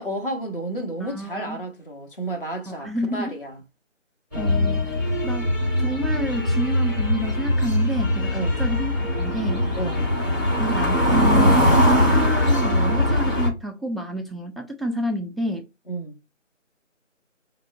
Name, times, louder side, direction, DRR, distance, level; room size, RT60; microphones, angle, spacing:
voice 1, 0.0-3.6 4.3-4.6 8.3-8.6 9.8-10.1 15.9-16.2, right 1 dB, 45° left, 1.1 m, -31 dB
voice 2, 1.0-1.6 2.7-3.3 4.4-4.9 5.2-5.5 5.8-9.7 10.6-15.7, right 1 dB, ahead, 0.4 m, -29 dB
sound 1, 4.3-13.5, left 1 dB, 15° left, 1.0 m, -21 dB
5.2 x 2.0 x 2.6 m
figure-of-eight pair, 170°, 38 cm